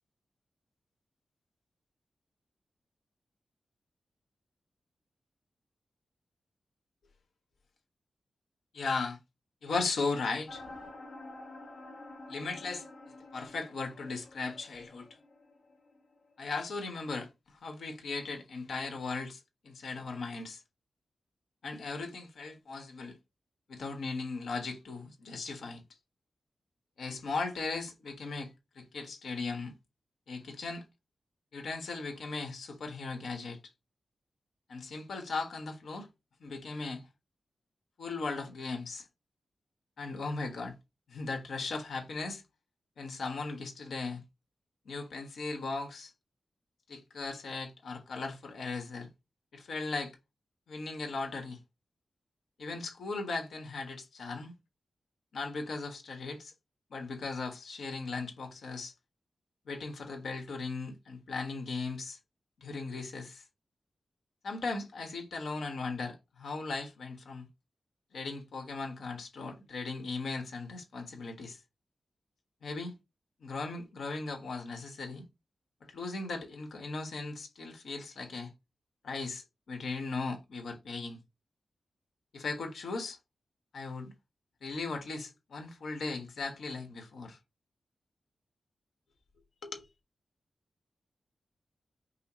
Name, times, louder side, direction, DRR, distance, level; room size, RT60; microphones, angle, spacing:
voice 1, 8.7-9.2 9.6-10.6 12.3-12.9 13.3-15.1 16.4-17.3 17.6-20.6 21.6-23.2 23.7-25.8 27.0-29.7 30.3-30.8 31.5-33.6 34.7-36.1 36.4-37.0 38.0-39.0 40.0-40.7 41.1-42.4 43.0-44.2 44.8-46.1 46.9-49.1 49.5-50.1 50.7-51.6 52.6-54.5 55.3-56.5 56.9-58.9 59.7-62.2 62.6-63.4 64.4-67.5 68.1-71.6 72.6-72.9 73.4-75.2 75.9-78.5 79.0-81.2 82.3-83.2 83.7-84.1 84.6-87.4 89.6-89.9, left 3 dB, 90° left, 1.4 m, -37 dB
sound 1, 10.5-16.0, left 2 dB, 55° left, 1.5 m, -49 dB
5.5 x 2.2 x 4.2 m
wide cardioid pair, 140°, 0 cm